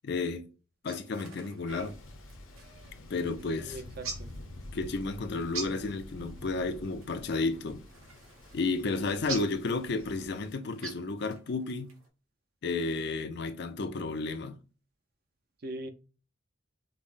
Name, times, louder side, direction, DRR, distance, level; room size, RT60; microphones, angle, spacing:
voice 1, 0.0-0.5 0.8-2.0 3.1-3.8 4.7-7.8 8.5-11.9 12.6-14.6, left 3 dB, 50° left, 0.4 m, -32 dB
sound 1, 0.9-12.1, right 4 dB, 85° right, 1.2 m, -46 dB
Thunder, 1.7-10.6, left 1 dB, 70° left, 0.9 m, -48 dB
voice 2, 3.6-4.3 6.1-6.4 15.6-15.9, right 1 dB, 45° right, 0.5 m, -41 dB
5.4 x 2.0 x 2.5 m
head